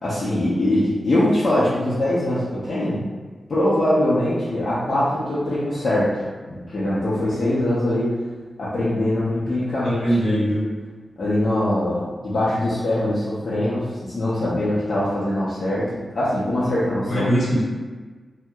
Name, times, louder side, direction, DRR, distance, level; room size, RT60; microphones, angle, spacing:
voice 1, 0.0-3.0 3.5-8.1 8.6-10.2 11.2-17.3, left 1 dB, 45° left, -11 dB, 0.6 m, -22 dB
voice 2, 10.0-10.6 17.1-17.6, equal, 65° left, -8 dB, 1.1 m, -21 dB
2.8 x 2.1 x 3.4 m, 1.4 s
wide cardioid pair, 165°, 0 cm